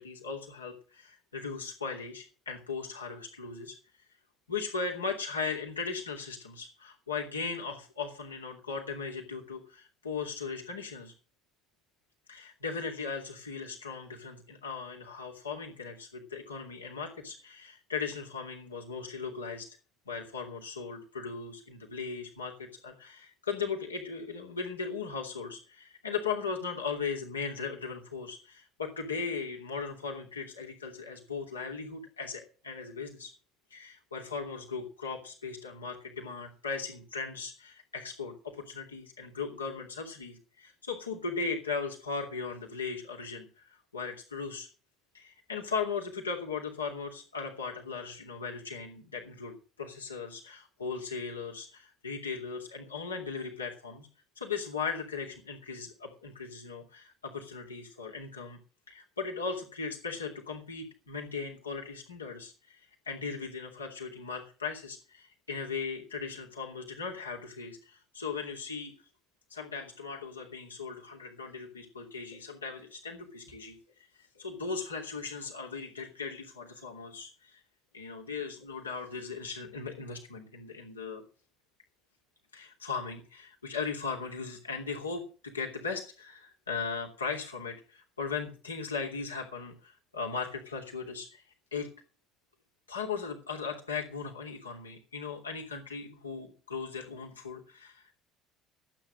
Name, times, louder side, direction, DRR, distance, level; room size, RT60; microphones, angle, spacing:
voice 1, 0.0-3.8 4.5-11.1 12.3-19.8 20.1-33.3 33.7-44.7 45.1-54.1 54.4-58.6 58.9-62.8 63.1-68.9 69.5-73.8 74.3-77.6 77.9-81.2 82.5-91.4 91.7-91.9 92.9-98.2, left 5 dB, 80° left, 1 dB, 2.8 m, -38 dB
13.5 x 9.0 x 6.3 m, 0.37 s
figure-of-eight pair, 60°, 0 cm